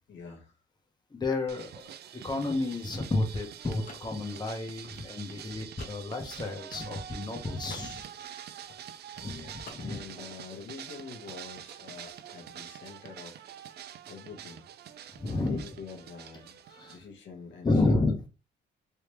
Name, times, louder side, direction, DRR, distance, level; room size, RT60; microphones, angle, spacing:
voice 1, 0.1-0.6 9.2-13.5 14.0-14.7 15.3-16.6 16.9-18.0, left 5 dB, 65° left, 1.2 m, -46 dB
voice 2, 1.1-1.7 2.1-8.0 9.2-9.4 9.7-10.0 15.1-15.6 16.7-17.0 17.6-18.2, left 2 dB, 20° left, 1.0 m, -30 dB
sound 1, 1.5-17.0, right 9 dB, 55° right, 0.4 m, -46 dB
sound 2, 2.0-7.3 7.6-9.3 9.6-10.3, left 3 dB, 45° left, 1.0 m, -51 dB
3.4 x 3.0 x 3.0 m
cardioid pair, 90°, 20 cm